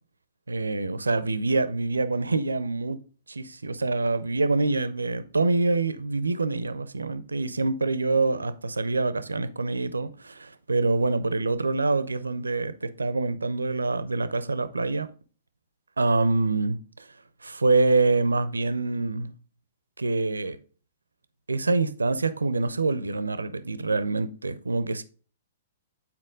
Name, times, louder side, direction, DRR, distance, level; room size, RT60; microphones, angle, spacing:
voice 1, 0.5-3.0 3.3-15.1 16.0-17.0 17.4-19.3 20.0-20.6 21.5-25.0, right 3 dB, 75° right, 0.6 m, -25 dB
8.6 x 4.3 x 3.7 m
figure-of-eight pair, 110°, 0 cm